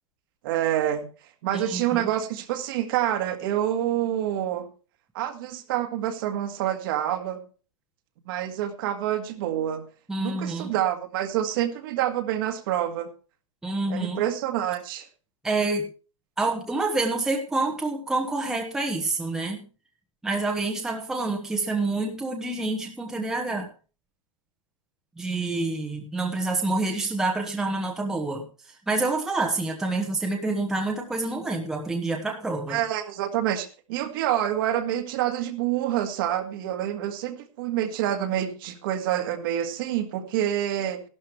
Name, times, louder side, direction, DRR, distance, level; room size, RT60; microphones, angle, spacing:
voice 1, 0.4-1.1 1.4-4.7 5.1-7.4 8.3-9.8 10.2-13.1 13.9-15.1 32.7-41.0, right 11 dB, 40° right, 1.7 m, -27 dB
voice 2, 1.5-2.1 10.1-10.7 13.6-14.3 15.4-15.9 16.4-19.6 20.2-23.7 25.2-32.8, right 2 dB, 5° right, 1.2 m, -27 dB
14.0 x 12.0 x 3.3 m
hypercardioid pair, 165°, 17 cm